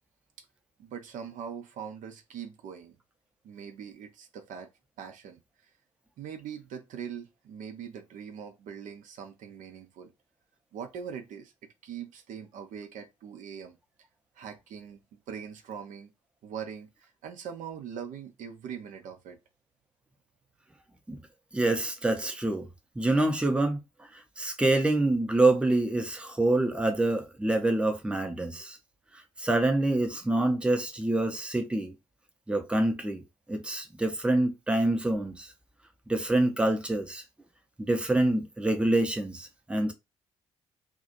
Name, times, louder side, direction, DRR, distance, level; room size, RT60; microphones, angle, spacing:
voice 1, 0.8-2.9 3.4-4.7 5.0-5.4 6.2-10.1 10.7-11.5 11.8-13.8 14.4-16.1 16.4-19.4, right 7 dB, 55° right, 0.4 m, -41 dB
voice 2, 21.5-22.7 23.0-23.8 24.1-28.8 29.4-31.9 32.5-33.2 33.5-35.5 36.1-37.2 37.8-39.9, right 2 dB, 5° right, 0.5 m, -26 dB
2.3 x 2.0 x 2.6 m
figure-of-eight pair, 45°, 16 cm